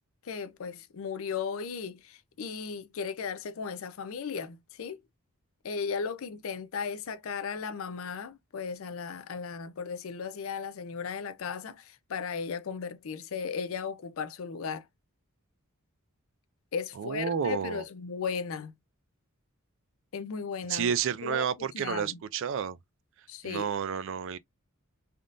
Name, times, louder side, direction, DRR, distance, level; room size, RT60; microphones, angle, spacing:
voice 1, 0.2-5.0 5.6-14.8 16.7-18.7 20.1-20.9 21.2-22.2 23.3-23.7, left 6 dB, 65° left, 0.4 m, -36 dB
voice 2, 17.0-17.8 20.7-22.8 23.4-24.4, right 7 dB, 60° right, 0.3 m, -30 dB
3.5 x 2.5 x 2.4 m
head